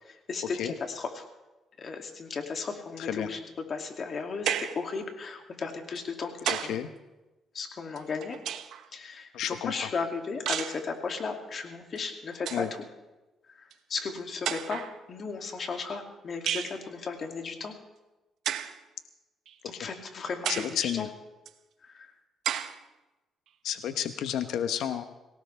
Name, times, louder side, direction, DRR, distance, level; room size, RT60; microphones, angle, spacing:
voice 1, 0.1-1.3 1.8-3.4 3.7-6.8 7.5-8.4 8.9-12.7 13.5-17.8 19.6-21.1 21.8-22.1, left 4 dB, 50° left, 3 dB, 2.5 m, -35 dB
sound 1, 4.5-4.9 6.0-6.8 8.0-8.9 10.5-10.8 12.0-12.1 12.3-12.7 13.7-13.8 14.4-15.0 16.5-16.8 18.4-18.8 19.5-19.6 20.4-20.8 21.5-21.6 22.4-22.8, right 10 dB, 80° right, 0.8 m, -32 dB
voice 2, 9.3-9.9 12.5-12.7 19.7-19.9 20.6-21.1 23.6-25.0, left 10 dB, 85° left, 9 dB, 0.9 m, -31 dB
24.0 x 17.5 x 3.4 m, 1.1 s
cardioid pair, 90°, 0 cm